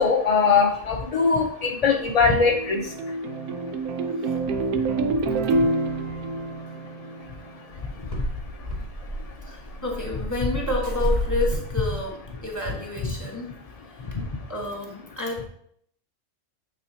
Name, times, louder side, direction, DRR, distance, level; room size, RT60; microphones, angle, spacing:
voice 1, 0.0-9.8 13.0-13.1 13.9-14.5, left 5 dB, 80° left, 2 dB, 0.3 m, -26 dB
sound 1, 2.0-7.6, right 3 dB, 85° right, 1.1 m, -27 dB
sound 2, 7.8-12.7, right 1 dB, 15° right, 2.0 m, -30 dB
voice 2, 9.4-13.5 13.9-14.0 14.5-15.5, left 2 dB, 15° left, 0 dB, 1.2 m, -30 dB
8.7 x 4.1 x 2.7 m, 0.68 s
omnidirectional pair, 1.5 m